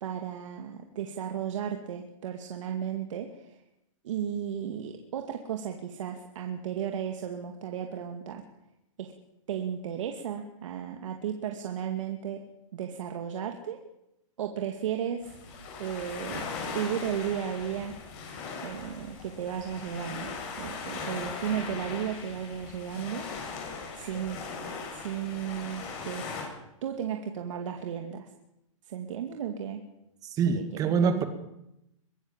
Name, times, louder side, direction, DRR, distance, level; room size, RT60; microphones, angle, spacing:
voice 1, 0.0-3.6 4.0-8.4 9.0-9.1 9.5-12.5 12.7-13.8 14.4-15.3 15.8-16.5 16.7-17.9 18.6-23.3 23.9-24.4 24.9-26.3 26.8-28.3 28.9-29.8 30.5-31.3, right 9 dB, 65° right, 3 dB, 2.3 m, -34 dB
sound 1, 15.2-26.4, left 4 dB, 35° left, 7.7 m, -39 dB
voice 2, 30.2-31.3, right 6 dB, 20° right, 9 dB, 2.0 m, -25 dB
23.0 x 17.0 x 7.4 m, 0.86 s
hypercardioid pair, 155°, 17 cm